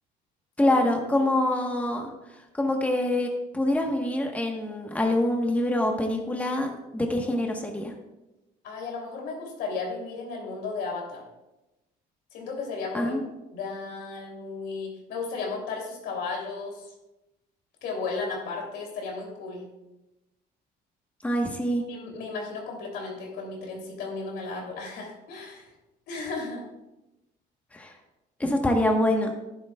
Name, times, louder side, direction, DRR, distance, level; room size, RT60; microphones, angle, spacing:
voice 1, 0.6-2.1 2.6-3.3 3.5-7.9 12.9-13.2 21.2-21.8 27.7-27.9 28.4-29.3, left 1 dB, 10° left, 2 dB, 1.2 m, -25 dB
voice 2, 8.6-11.2 12.3-13.2 13.5-16.9 17.8-19.6 21.9-25.7 26.1-26.7, left 4 dB, 80° left, 0 dB, 3.0 m, -34 dB
11.0 x 10.5 x 2.3 m, 0.99 s
cardioid pair, 110°, 17 cm